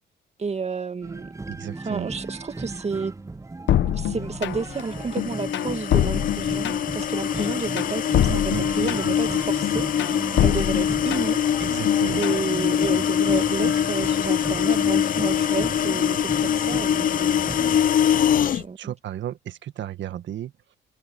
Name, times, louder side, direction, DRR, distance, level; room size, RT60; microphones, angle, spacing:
voice 1, 0.4-1.3 1.8-3.1 3.9-11.4 12.2-17.4 18.4-18.9, right 5 dB, 35° right, 2.0 m, -31 dB
sound 1, 1.0-17.9, right 3 dB, 15° right, 0.8 m, -36 dB
voice 2, 1.5-2.1 8.3-9.4 11.6-12.2 13.3-13.7 18.4-20.8, right 11 dB, 70° right, 1.6 m, -34 dB
sound 2, 3.7-4.8 5.2-7.0 7.4-9.3 9.6-11.5 11.8-12.4, left 12 dB, 65° left, 0.8 m, -25 dB
sound 3, 4.7-18.6, left 9 dB, 45° left, 0.4 m, -23 dB
cardioid pair, 90°, 20 cm